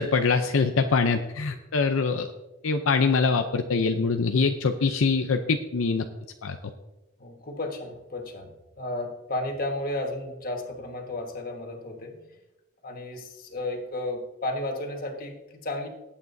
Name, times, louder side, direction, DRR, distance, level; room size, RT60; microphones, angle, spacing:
voice 1, 0.0-2.3 2.6-6.1 6.4-6.6, left 4 dB, 75° left, 6 dB, 0.6 m, -24 dB
voice 2, 7.2-12.2 12.8-15.9, left 1 dB, 45° left, 2 dB, 1.5 m, -33 dB
19.0 x 8.6 x 2.7 m, 1.0 s
head